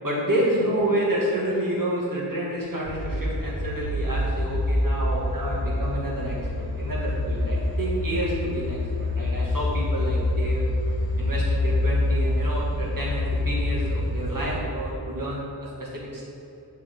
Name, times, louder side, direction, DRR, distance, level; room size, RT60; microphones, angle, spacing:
voice 1, 0.0-10.7 11.2-16.3, right 1 dB, 50° right, -6 dB, 2.0 m, -29 dB
sound 1, 2.9-14.6, left 1 dB, 30° left, 1.1 m, -26 dB
9.9 x 6.4 x 3.8 m, 2.8 s
wide cardioid pair, 85°, 41 cm